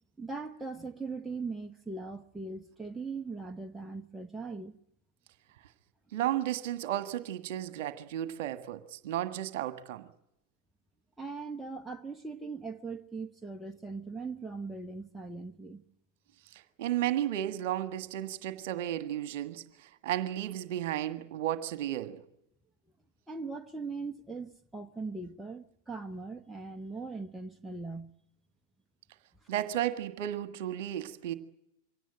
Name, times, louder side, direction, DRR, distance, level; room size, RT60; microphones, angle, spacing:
voice 1, 0.2-4.8 11.2-15.8 23.3-28.1 29.4-29.5, right 4 dB, 5° right, 1.0 m, -40 dB
voice 2, 6.1-10.1 16.5-22.2 29.5-31.3, right 12 dB, 50° right, 1.6 m, -33 dB
24.0 x 17.5 x 8.9 m
figure-of-eight pair, 90°, 0 cm